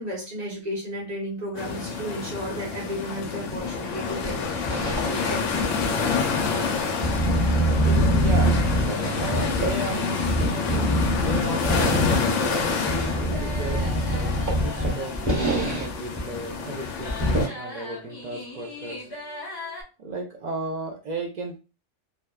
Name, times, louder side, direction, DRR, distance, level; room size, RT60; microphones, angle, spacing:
voice 1, 0.0-6.1, equal, 40° right, -3 dB, 0.9 m, -34 dB
sound 1, 1.6-17.5, left 5 dB, 80° left, 0.9 m, -28 dB
sound 2, 4.1-5.3 5.6-9.9 10.2-15.9 16.2-16.3 16.6-16.7 17.1-17.4, equal, 20° right, 0.7 m, -24 dB
voice 2, 7.6-19.1 20.0-21.6, right 2 dB, 65° right, 2 dB, 0.4 m, -35 dB
sound 3, 12.6-19.8, left 1 dB, 25° left, 0.6 m, -40 dB
2.6 x 2.1 x 2.2 m, 0.30 s
omnidirectional pair, 1.3 m